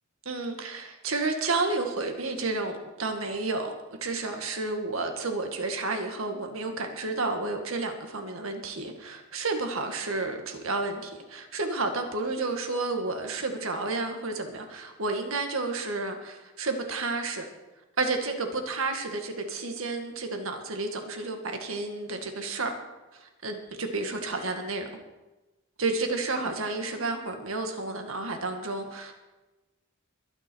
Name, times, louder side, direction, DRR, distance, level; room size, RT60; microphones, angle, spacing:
voice 1, 0.3-3.7 4.0-17.5 18.0-22.7 23.1-24.9 25.8-29.1, right 3 dB, 80° right, 5 dB, 1.8 m, -31 dB
22.0 x 9.8 x 4.6 m, 1.1 s
head